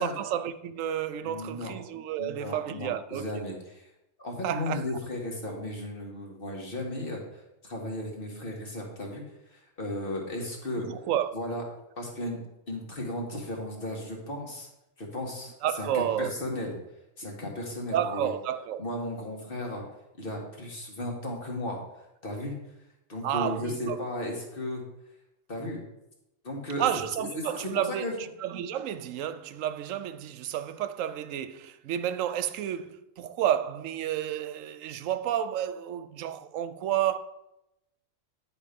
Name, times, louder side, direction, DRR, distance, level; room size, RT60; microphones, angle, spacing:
voice 1, 0.0-3.6 4.4-4.8 10.8-11.4 15.6-16.3 17.9-18.8 23.2-24.0 26.8-37.2, right 10 dB, 80° right, 0.9 m, -31 dB
voice 2, 1.2-1.7 2.2-3.7 4.2-9.2 9.5-10.9 11.3-11.6 12.0-14.7 15.0-16.7 17.2-18.3 18.8-19.8 20.2-21.8 22.2-22.5 23.1-24.8 25.5-25.8 26.4-26.9 27.2-27.4 27.7-28.2, left 1 dB, 45° left, 1.8 m, -35 dB
10.0 x 4.6 x 5.2 m
omnidirectional pair, 1.3 m